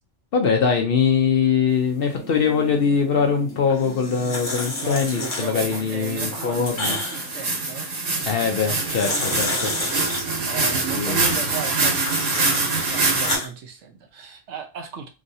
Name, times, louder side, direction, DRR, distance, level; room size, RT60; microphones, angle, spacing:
voice 1, 0.3-7.0 8.3-9.7 10.9-11.3, left 6 dB, 60° left, 3 dB, 0.7 m, -22 dB
sound 1, 1.9-10.6 11.8-11.9, left 2 dB, 5° right, 0.8 m, -43 dB
sound 2, 3.7-5.8 6.2-7.4 8.6-10.2 11.5-12.6 13.0-13.5, left 2 dB, 45° left, 1.0 m, -30 dB
voice 2, 4.8-7.9 9.1-15.1, right 6 dB, 70° right, 4 dB, 0.8 m, -36 dB
sound 3, 5.4-13.4, right 3 dB, 85° right, 1.4 m, -25 dB
3.1 x 2.6 x 2.6 m, 0.30 s
omnidirectional pair, 1.3 m